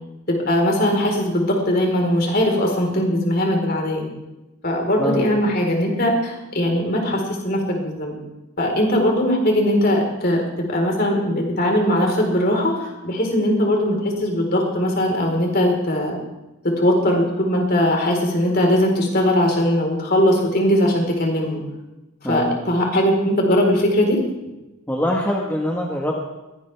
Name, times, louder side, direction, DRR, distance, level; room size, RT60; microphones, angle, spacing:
voice 1, 0.3-4.0 4.6-8.1 8.6-16.2 16.8-21.6 22.3-24.2, left 1 dB, 45° left, 0 dB, 4.3 m, -20 dB
voice 2, 5.0-5.4 22.2-22.6 24.9-26.2, left 1 dB, 10° left, -1 dB, 1.5 m, -23 dB
21.5 x 17.5 x 3.5 m, 1.0 s
head